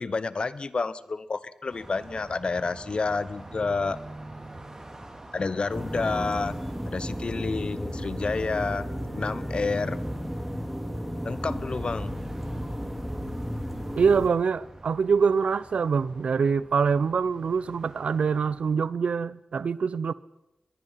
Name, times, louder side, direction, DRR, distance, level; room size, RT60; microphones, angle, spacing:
voice 1, 0.0-4.0 5.3-6.5 6.9-8.9 9.2-10.0 11.2-12.2, left 4 dB, 55° left, 1.0 m, -29 dB
Car passing by, 1.7-18.9, right 2 dB, 30° right, 4.7 m, -47 dB
sound 1, 5.7-14.3, equal, ahead, 3.3 m, -33 dB
voice 2, 14.0-20.1, right 5 dB, 80° right, 0.7 m, -24 dB
24.5 x 20.5 x 5.8 m
cardioid pair, 55°, 2 cm